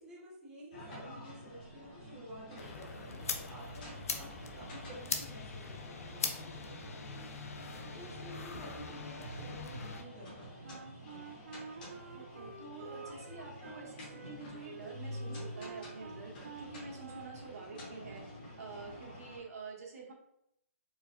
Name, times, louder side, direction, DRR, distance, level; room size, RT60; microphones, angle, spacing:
voice 1, 0.0-7.4 7.9-11.3, right 1 dB, 5° right, -8 dB, 0.6 m, -51 dB
sound 1, 0.7-19.4, equal, 35° left, 1.4 m, -48 dB
sound 2, 2.6-10.0, left 5 dB, 75° left, 0.5 m, -42 dB
Wind instrument woodwind instrument, 10.6-17.5, right 5 dB, 65° right, 0.5 m, -49 dB
voice 2, 12.1-16.3 16.6-18.3 18.6-20.1, right 3 dB, 80° right, -4 dB, 1.2 m, -48 dB
4.5 x 2.2 x 2.5 m, 0.80 s
hypercardioid pair, 170°, 8 cm